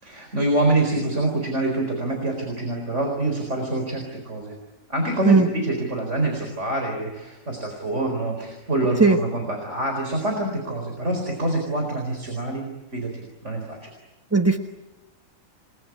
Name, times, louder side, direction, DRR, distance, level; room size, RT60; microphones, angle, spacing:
voice 1, 0.0-4.5 4.9-12.7 12.9-13.1 13.4-13.9, right 2 dB, 60° right, 3 dB, 4.7 m, -26 dB
voice 2, 5.2-5.5 9.0-9.2 14.3-14.6, right 4 dB, 10° right, 6 dB, 1.1 m, -16 dB
28.5 x 21.0 x 9.6 m, 1.0 s
omnidirectional pair, 1.4 m